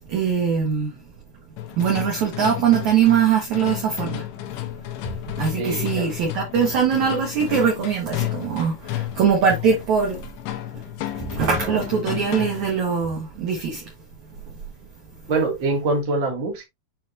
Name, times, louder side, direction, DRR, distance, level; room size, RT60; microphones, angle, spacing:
voice 1, 0.1-0.9 1.8-4.2 5.4-10.2 11.1-13.8, right 7 dB, 60° right, 2.1 m, -22 dB
sound 1, 1.6-12.8, left 15 dB, 90° left, 3.0 m, -32 dB
voice 2, 5.6-6.1 15.3-16.6, right 3 dB, 35° right, 2.2 m, -24 dB
8.8 x 4.2 x 2.6 m
omnidirectional pair, 5.1 m